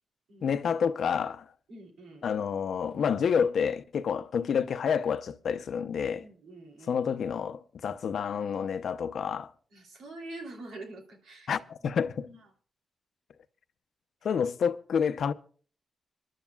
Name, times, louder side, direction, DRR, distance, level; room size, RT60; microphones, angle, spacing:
voice 1, 0.4-1.5 2.2-6.2 6.9-9.5 11.5-12.3 14.2-15.3, left 7 dB, 70° left, 0.7 m, -29 dB
voice 2, 1.7-2.3 6.2-7.0 9.7-12.5 14.2-14.4, right 2 dB, 85° right, 3.1 m, -46 dB
26.5 x 11.0 x 2.3 m
cardioid pair, 80°, 0 cm